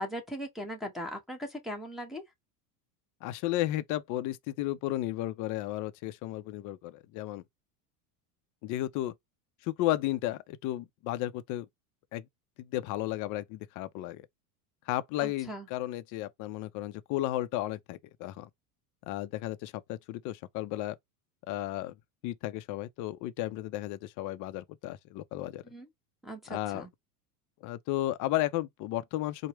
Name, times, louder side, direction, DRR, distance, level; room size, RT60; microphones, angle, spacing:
voice 1, 0.0-2.2 15.2-15.7 25.7-25.9 26.2-26.9, equal, ahead, 0.9 m, -39 dB
voice 2, 3.2-7.4 8.6-9.1 9.6-11.7 12.1-12.2 12.6-14.3 14.9-18.5 19.1-21.0 21.5-22.0 22.2-25.6 26.5-26.9 27.6-29.5, left 15 dB, 45° left, 0.5 m, -33 dB
4.6 x 2.1 x 3.0 m
supercardioid pair, 135°, 46 cm